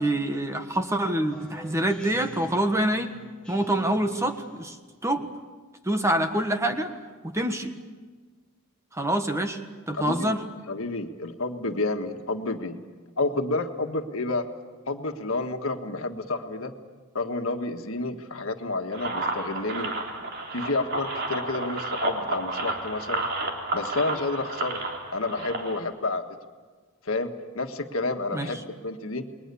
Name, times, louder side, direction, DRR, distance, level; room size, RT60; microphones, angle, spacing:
voice 1, 0.0-3.1 3.5-4.8 5.0-5.3 5.8-6.9 7.2-7.7 8.9-9.6 9.9-10.4 28.3-28.5, right 1 dB, 15° right, 6 dB, 1.4 m, -26 dB
Speech synthesizer, 1.3-4.6, left 2 dB, 5° left, 2.4 m, -48 dB
voice 2, 9.9-10.4 10.7-12.8 13.2-14.5 14.9-16.7 17.2-19.9 20.5-23.3 23.7-24.8 25.1-26.2 27.1-29.2, left 2 dB, 65° left, 5 dB, 1.7 m, -30 dB
sound 1, 18.9-25.8, right 2 dB, 50° right, 3.2 m, -31 dB
29.5 x 21.0 x 7.0 m, 1.4 s
head